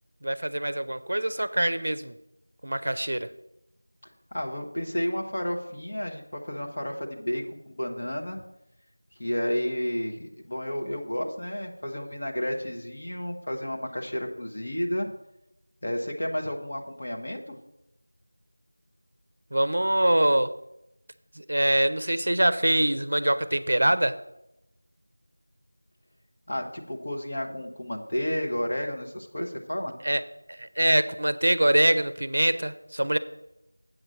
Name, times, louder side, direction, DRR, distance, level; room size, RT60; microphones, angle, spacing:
voice 1, 0.2-2.1 2.6-3.3 19.5-20.5 21.4-24.2 30.0-30.2 30.6-33.2, right 1 dB, 55° right, 13 dB, 0.6 m, -24 dB
voice 2, 4.3-8.4 9.2-15.1 15.8-17.6 26.5-29.9, equal, 40° left, 1 dB, 1.2 m, -31 dB
7.8 x 5.7 x 7.7 m, 0.87 s
figure-of-eight pair, 175°, 0 cm